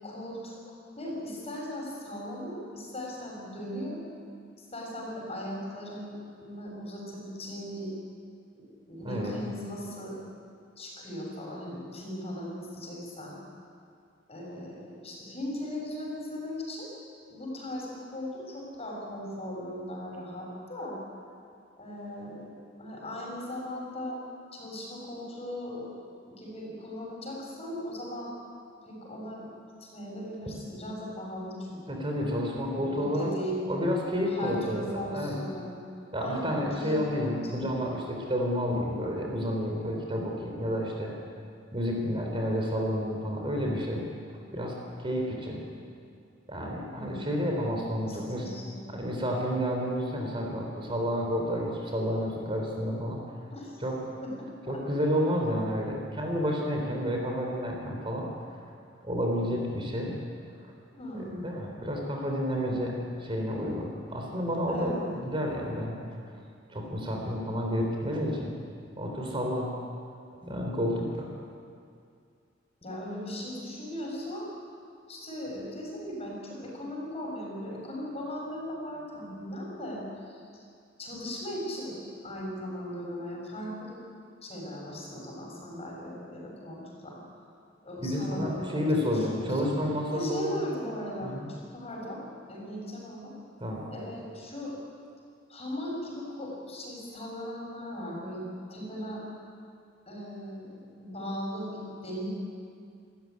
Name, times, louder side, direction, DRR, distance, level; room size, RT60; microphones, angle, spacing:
voice 1, 0.0-0.5 1.0-4.0 4.6-7.9 8.5-10.2 10.8-13.4 14.3-16.9 17.3-21.0 21.8-22.5 22.8-24.2 24.5-25.9 26.2-28.3 28.9-29.5 29.8-32.0 32.7-33.6 34.2-35.8 36.2-37.7 46.9-47.3 48.0-48.7 53.5-53.8 54.2-54.8 60.9-61.5 64.7-65.1 72.8-74.5 75.1-80.6 81.0-82.0 82.2-84.0 84.4-87.2 87.8-88.9 89.1-89.7 90.1-92.2 92.5-93.3 93.9-94.8 95.5-99.2 100.1-102.3, equal, 35° left, -2 dB, 7.2 m, -38 dB
voice 2, 31.9-33.3 33.7-35.4 36.1-41.1 41.7-44.0 44.5-45.6 46.5-48.5 48.9-53.2 53.8-54.0 54.7-58.3 59.0-60.1 61.4-65.9 66.7-68.5 69.0-69.7 70.4-71.3 88.0-90.6 91.2-91.5 93.6-93.9, equal, 30° right, 0 dB, 3.8 m, -30 dB
28.5 x 14.0 x 9.6 m, 2.3 s
head